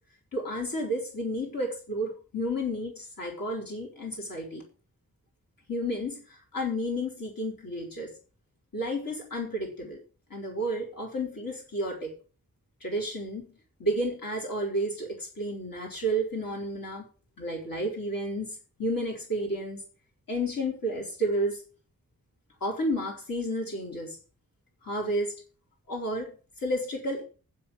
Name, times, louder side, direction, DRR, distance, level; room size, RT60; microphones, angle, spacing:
voice 1, 0.3-4.6 5.7-8.1 8.7-10.0 10.3-12.1 12.8-13.5 13.8-17.1 17.4-18.5 18.8-19.8 20.3-21.6 22.6-24.2 24.8-25.3 25.9-26.3 26.6-27.2, equal, 75° left, -2 dB, 4.6 m, -31 dB
8.0 x 7.8 x 7.3 m, 0.38 s
wide cardioid pair, 60°, 35 cm